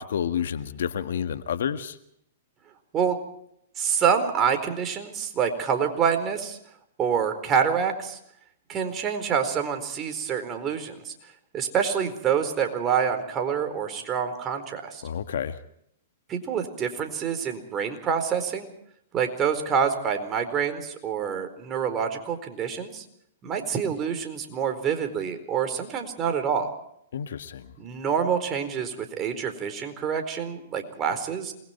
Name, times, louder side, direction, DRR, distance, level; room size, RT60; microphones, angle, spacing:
voice 1, 0.0-2.0 15.0-15.6 27.1-27.7, left 8 dB, 70° left, 10 dB, 1.7 m, -29 dB
voice 2, 3.8-6.6 7.0-8.2 8.7-11.1 11.5-15.0 16.3-18.7 19.1-23.0 23.4-26.7 27.8-31.5, right 7 dB, 25° right, 6 dB, 4.4 m, -27 dB
28.0 x 21.5 x 4.5 m, 0.74 s
hypercardioid pair, 120°, 0 cm